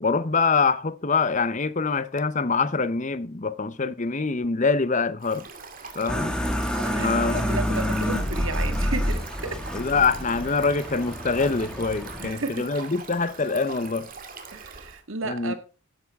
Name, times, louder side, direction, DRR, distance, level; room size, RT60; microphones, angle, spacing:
voice 1, 0.0-5.5 6.0-6.4 7.0-7.4 9.7-14.1 15.2-15.5, left 4 dB, 35° left, 0.7 m, -24 dB
Stream, 5.2-15.0, right 5 dB, 40° right, 2.2 m, -42 dB
sound 1, 6.1-12.3, equal, 5° left, 1.7 m, -28 dB
voice 2, 6.8-9.6 12.2-12.7 14.5-15.6, right 3 dB, 65° right, 1.9 m, -33 dB
14.5 x 10.5 x 3.6 m
head